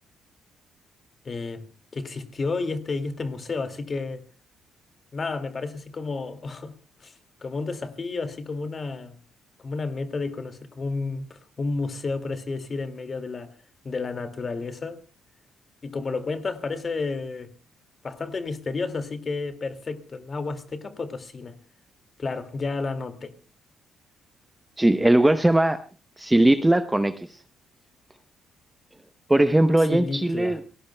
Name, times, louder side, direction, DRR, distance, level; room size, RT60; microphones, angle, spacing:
voice 1, 1.2-1.6 1.9-4.2 5.1-6.7 7.0-7.1 7.4-9.2 9.6-13.5 13.8-15.0 15.8-17.5 18.0-21.6 22.2-23.3 29.8-30.6, left 3 dB, 40° left, 2.2 m, -31 dB
voice 2, 24.8-25.8 26.2-27.1 29.3-30.6, right 1 dB, 10° right, 0.8 m, -19 dB
29.0 x 18.5 x 2.2 m
cardioid pair, 90°, 0 cm